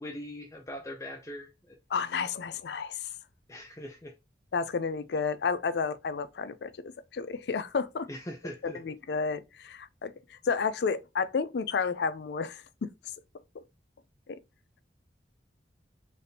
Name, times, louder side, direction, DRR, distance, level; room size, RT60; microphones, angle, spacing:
voice 1, 0.0-1.8 3.5-4.1 8.1-8.8, left 1 dB, 15° left, 0.5 m, -41 dB
voice 2, 1.9-3.1 4.5-6.7 7.1-8.1 8.6-12.9 14.3-14.4, left 5 dB, 70° left, 0.4 m, -31 dB
4.1 x 3.4 x 2.7 m
head